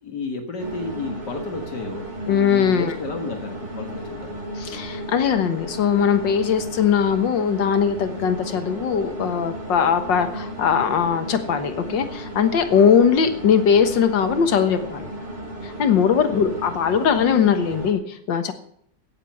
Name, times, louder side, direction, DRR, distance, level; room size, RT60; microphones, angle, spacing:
voice 1, 0.0-4.4 16.3-16.5, left 3 dB, 65° left, 4 dB, 2.2 m, -32 dB
sound 1, 0.6-17.9, equal, 25° right, 3.1 m, -34 dB
voice 2, 2.3-2.9 4.6-15.1 15.6-18.5, left 7 dB, 85° left, 9 dB, 2.0 m, -20 dB
16.5 x 7.6 x 7.3 m, 0.66 s
omnidirectional pair, 1.9 m